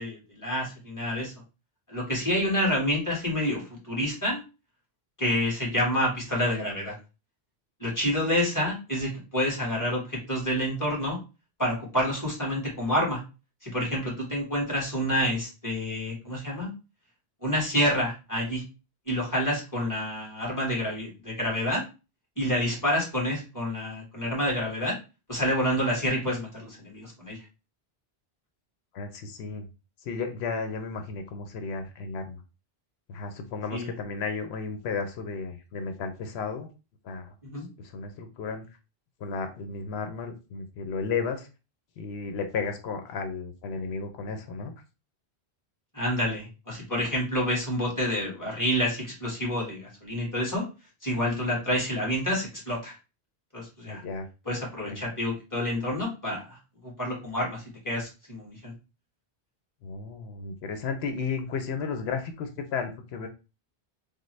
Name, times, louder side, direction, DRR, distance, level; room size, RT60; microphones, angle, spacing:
voice 1, 0.0-1.3 1.9-4.4 5.2-6.9 7.8-11.2 11.6-13.2 13.6-16.7 17.4-18.6 19.1-21.8 22.4-24.9 25.3-27.4 33.7-33.9 37.4-37.7 45.9-50.6 51.0-52.9 53.5-54.0 54.4-56.6 56.8-58.7, equal, 20° left, -3 dB, 1.4 m, -28 dB
voice 2, 28.9-29.7 30.0-32.4 33.1-36.7 37.0-37.3 37.8-38.6 39.2-41.5 42.0-44.7 53.9-54.3 54.9-55.0 59.8-63.3, left 5 dB, 80° left, 6 dB, 0.8 m, -33 dB
3.5 x 2.0 x 3.1 m, 0.30 s
omnidirectional pair, 1.1 m